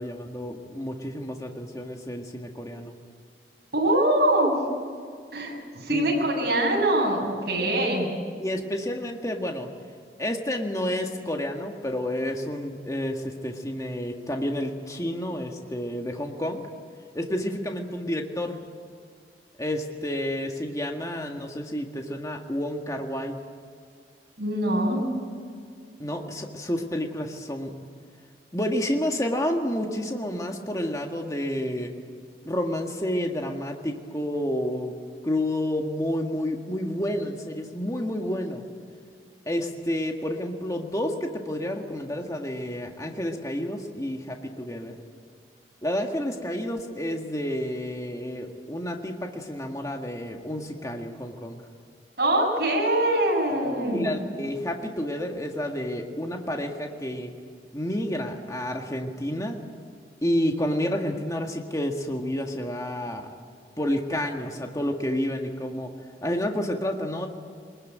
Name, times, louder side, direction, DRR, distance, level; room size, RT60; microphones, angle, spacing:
voice 1, 0.0-3.0 5.9-6.1 8.4-9.7 10.2-16.6 17.1-18.6 19.6-23.4 26.0-27.7 28.5-31.9 32.4-34.9 35.2-38.6 39.4-44.9 45.8-51.6 53.6-57.3 57.7-59.6 60.2-63.3 63.8-65.9 66.2-67.3, left 1 dB, 20° left, 2 dB, 1.7 m, -30 dB
voice 2, 3.7-4.6 5.3-8.1 24.4-25.0 52.2-54.1, right 1 dB, 60° right, -1 dB, 7.1 m, -23 dB
24.0 x 21.0 x 9.3 m, 2.1 s
head